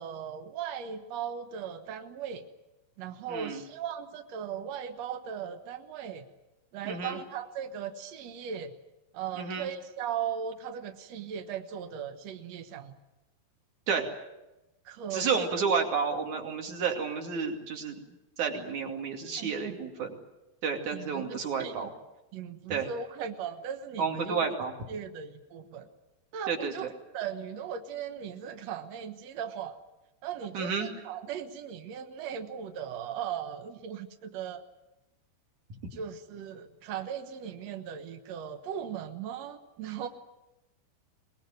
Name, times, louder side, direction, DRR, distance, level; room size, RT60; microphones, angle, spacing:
voice 1, 0.0-2.4 3.0-6.2 6.7-8.7 9.1-13.0 14.8-15.3 19.4-19.8 20.9-21.9 22.3-24.5 24.9-25.9 26.3-26.9 27.1-29.8 30.2-34.6 35.9-40.1, right 8 dB, 80° right, 6 dB, 1.5 m, -38 dB
voice 2, 3.3-3.6 6.9-7.2 9.4-9.7 13.9-14.1 15.1-18.0 18.4-20.1 20.6-21.9 22.7-22.9 24.0-24.7 26.5-26.7 30.5-30.9, right 5 dB, 45° right, 3 dB, 3.5 m, -30 dB
23.5 x 20.0 x 9.4 m, 0.99 s
omnidirectional pair, 5.1 m